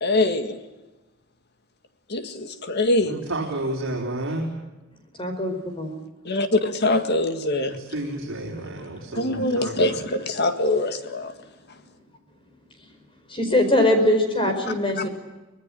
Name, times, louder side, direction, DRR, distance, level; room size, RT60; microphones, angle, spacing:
voice 1, 0.0-0.6 2.1-3.2 6.3-7.8 9.2-11.3 15.0-15.1, left 2 dB, 50° left, 8 dB, 1.9 m, -23 dB
voice 2, 3.0-4.5 7.6-10.0, right 1 dB, 65° right, -3 dB, 4.6 m, -31 dB
voice 3, 5.2-5.9 13.3-15.1, left 1 dB, 25° left, 6 dB, 4.9 m, -21 dB
24.5 x 20.0 x 9.1 m, 1.1 s
head